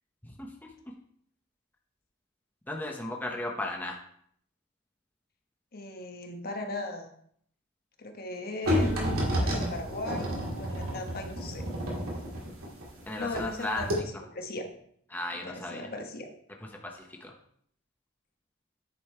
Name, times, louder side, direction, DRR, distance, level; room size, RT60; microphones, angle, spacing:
voice 1, 0.2-0.7 2.7-4.0 13.1-14.2 15.1-15.9 16.8-17.3, left 1 dB, 10° left, 1 dB, 0.9 m, -36 dB
voice 2, 5.7-7.1 8.0-10.3 10.6-11.7 13.2-14.6 15.3-16.3, left 2 dB, 45° left, 4 dB, 1.2 m, -38 dB
sound 1, 8.7-13.5 13.8-13.9, equal, 85° right, 2.6 m, -30 dB
9.8 x 5.4 x 4.4 m, 0.65 s
head